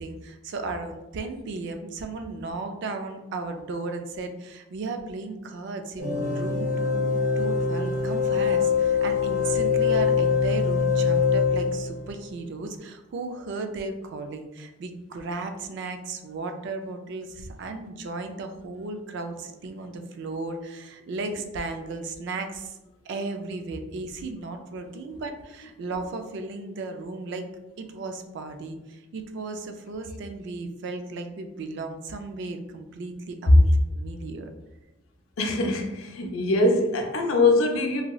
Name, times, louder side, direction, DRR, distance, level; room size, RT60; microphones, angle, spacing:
voice 1, 0.0-22.8 23.1-27.5 27.8-34.5, right 3 dB, 55° right, 6 dB, 0.3 m, -35 dB
sound 1, 6.0-12.1, left 5 dB, 85° right, 0.8 m, -23 dB
voice 2, 35.4-38.0, left 2 dB, 75° left, 3 dB, 0.5 m, -23 dB
3.0 x 2.7 x 2.3 m, 1.0 s
head